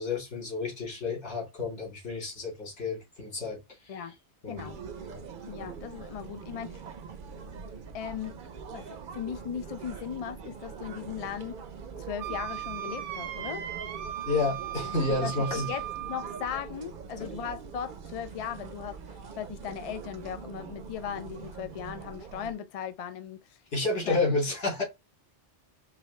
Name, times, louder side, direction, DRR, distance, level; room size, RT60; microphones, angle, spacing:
voice 1, 0.0-3.9 4.4-4.7 5.1-5.2 14.3-15.7 17.2-17.3 23.7-24.8, left 3 dB, 75° left, 2.4 m, -30 dB
voice 2, 4.5-4.8 5.5-6.8 7.9-8.4 8.7-8.9 9.1-11.6 12.1-13.6 15.2-23.4 24.0-24.2, left 8 dB, 55° left, 0.4 m, -37 dB
sound 1, 4.6-22.5, right 6 dB, 55° right, 0.7 m, -43 dB
Wind instrument woodwind instrument, 12.2-16.6, right 11 dB, 90° right, 1.1 m, -37 dB
4.8 x 2.3 x 3.2 m
omnidirectional pair, 1.2 m